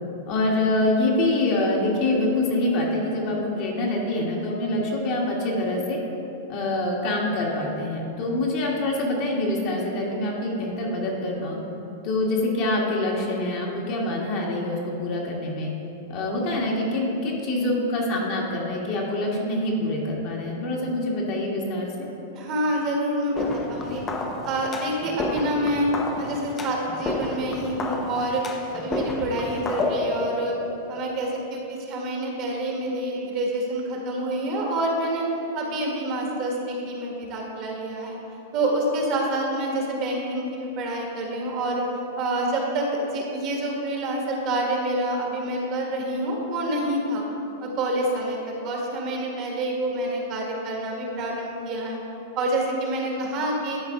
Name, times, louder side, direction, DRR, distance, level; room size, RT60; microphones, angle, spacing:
voice 1, 0.3-6.0 6.5-11.6 12.0-15.7 16.1-21.9, left 2 dB, 50° left, -2 dB, 1.6 m, -25 dB
voice 2, 22.3-24.0 24.4-25.9 26.2-28.4 28.7-30.6 30.9-35.2 35.5-38.2 38.5-41.8 42.2-47.2 47.6-48.4 48.6-52.0 52.3-53.8, right 1 dB, 40° right, -1 dB, 1.5 m, -27 dB
sound 1, 23.3-31.5, left 3 dB, 20° left, 0.7 m, -31 dB
11.0 x 4.1 x 3.7 m, 3.0 s
hypercardioid pair, 125°, 0 cm